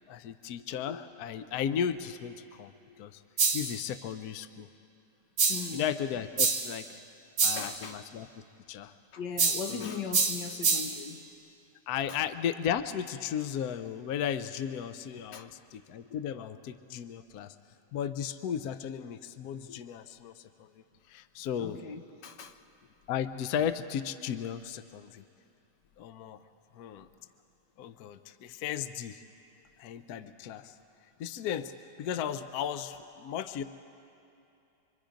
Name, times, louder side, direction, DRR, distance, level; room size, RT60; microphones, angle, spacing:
voice 1, 0.1-3.2 3.5-4.7 5.7-7.0 7.4-8.3 8.7-8.9 9.7-10.0 11.9-17.5 17.9-21.8 23.1-25.2 26.0-26.4 26.7-27.1 27.8-29.2 29.8-30.7 31.2-31.7 32.0-33.6, left 9 dB, 70° left, 1.1 m, -35 dB
sound 1, 3.4-3.8 5.4-5.8 6.4-6.8 7.4-7.8 9.4-9.8 10.1-11.0, right 4 dB, 80° right, 2.3 m, -27 dB
voice 2, 5.5-5.9 7.6-8.0 9.1-11.3 12.1-12.2 15.3-15.5 21.6-22.6, left 6 dB, 90° left, 1.7 m, -39 dB
25.0 x 25.0 x 5.1 m
omnidirectional pair, 1.8 m